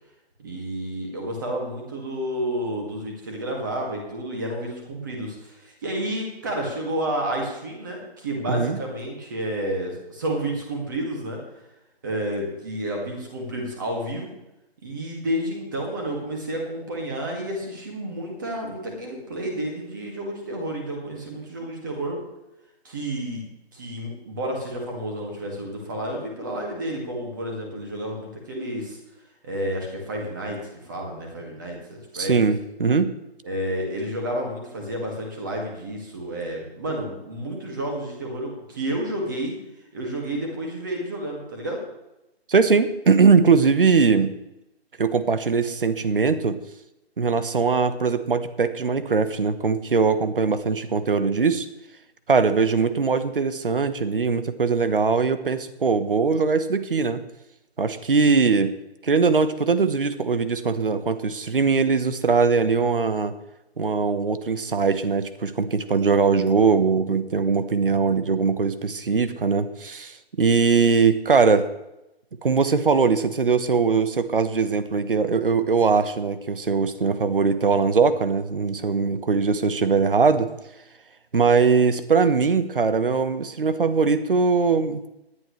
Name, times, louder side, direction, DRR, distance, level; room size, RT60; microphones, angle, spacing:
voice 1, 0.4-11.4 12.0-14.3 14.8-22.2 22.8-23.4 23.7-29.0 29.4-32.4 33.4-39.5 39.9-41.8, right 1 dB, 20° right, 0 dB, 2.2 m, -30 dB
voice 2, 8.5-8.8 32.1-33.1 42.5-44.3 45.0-46.6 47.2-51.7 52.3-57.2 57.8-58.7 59.0-63.3 63.8-71.7 72.4-80.5 81.3-85.0, right 5 dB, 55° right, 12 dB, 1.2 m, -21 dB
18.0 x 11.0 x 3.3 m, 0.90 s
hypercardioid pair, 175°, 32 cm